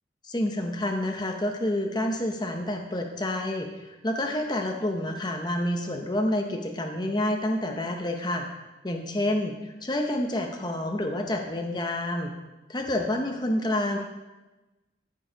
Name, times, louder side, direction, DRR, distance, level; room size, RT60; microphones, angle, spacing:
voice 1, 0.2-8.5 8.8-12.3 12.7-14.0, left 1 dB, 20° left, 3 dB, 0.7 m, -28 dB
13.0 x 4.7 x 5.1 m, 1.1 s
head